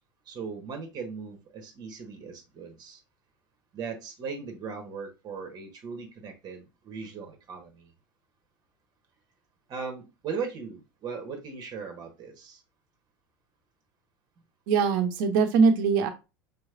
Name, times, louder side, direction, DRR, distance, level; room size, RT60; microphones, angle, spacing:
voice 1, 0.3-3.0 3.7-7.9 9.7-12.6, right 5 dB, 35° right, 5 dB, 1.2 m, -38 dB
voice 2, 14.7-16.1, right 5 dB, 60° right, 7 dB, 0.8 m, -22 dB
5.1 x 3.1 x 2.4 m, 0.27 s
figure-of-eight pair, 80°, 12 cm